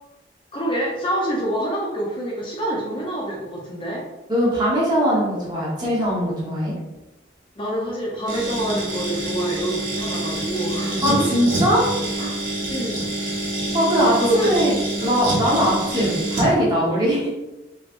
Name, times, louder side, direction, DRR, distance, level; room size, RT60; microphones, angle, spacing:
voice 1, 0.5-4.0 7.6-11.3 12.7-13.0 14.1-14.6, right 1 dB, 25° left, -3 dB, 0.5 m, -26 dB
voice 2, 4.3-6.7 11.0-11.9 12.2-12.3 13.7-14.7 15.0-17.3, equal, 25° right, -6 dB, 1.0 m, -20 dB
sound 1, 8.3-16.5, right 1 dB, 45° right, 1.1 m, -26 dB
3.1 x 3.0 x 2.5 m, 1.0 s
head